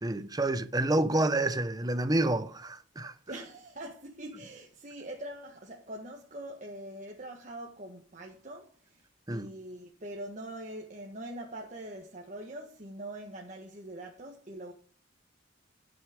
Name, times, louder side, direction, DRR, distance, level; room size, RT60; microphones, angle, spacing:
voice 1, 0.0-3.1 9.3-9.5, right 2 dB, 20° right, 0.9 m, -28 dB
voice 2, 3.3-14.7, right 1 dB, 40° right, 1.6 m, -43 dB
17.0 x 6.5 x 5.1 m
head